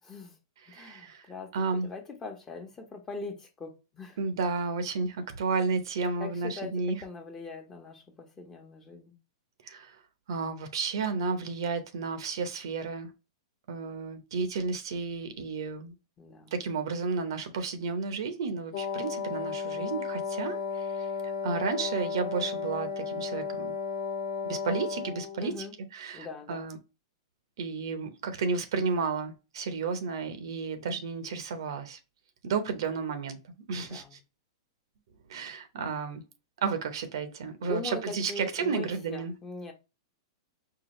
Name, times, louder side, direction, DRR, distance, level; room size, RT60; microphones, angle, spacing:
voice 1, 0.1-0.4 0.7-4.2 6.2-9.1 16.2-16.6 25.4-25.7 26.1-26.7 33.7-34.2 37.6-39.7, left 3 dB, 20° left, 1.0 m, -41 dB
voice 2, 0.7-1.3 1.5-1.9 4.2-7.0 9.6-10.0 10.3-13.1 13.7-15.9 16.5-23.7 24.4-25.6 25.9-26.8 27.6-32.0 32.4-33.4 33.7-34.2 35.3-36.2 36.6-39.3, right 4 dB, 70° right, 0.8 m, -32 dB
Wind instrument woodwind instrument, 18.7-25.5, left 5 dB, 75° left, 0.8 m, -34 dB
4.7 x 2.3 x 3.1 m
hypercardioid pair, 120°, 3 cm